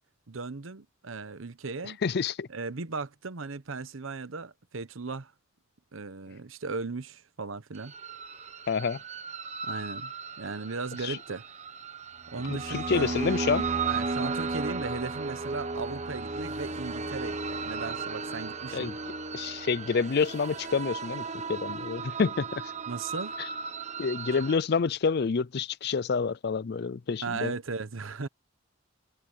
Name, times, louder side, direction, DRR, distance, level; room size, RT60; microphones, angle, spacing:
voice 1, 0.3-2.0 2.5-5.3 5.9-7.9 9.6-10.1 10.4-11.4 12.3-13.2 13.9-18.9 22.9-23.3 27.2-28.3, right 4 dB, 85° right, 1.0 m, -37 dB
voice 2, 1.8-2.5 8.7-9.0 11.0-11.2 12.5-13.7 18.7-18.9 19.3-22.7 24.0-27.5, left 5 dB, 55° left, 0.4 m, -28 dB
sound 1, 7.8-24.6, right 4 dB, 35° right, 1.3 m, -35 dB
head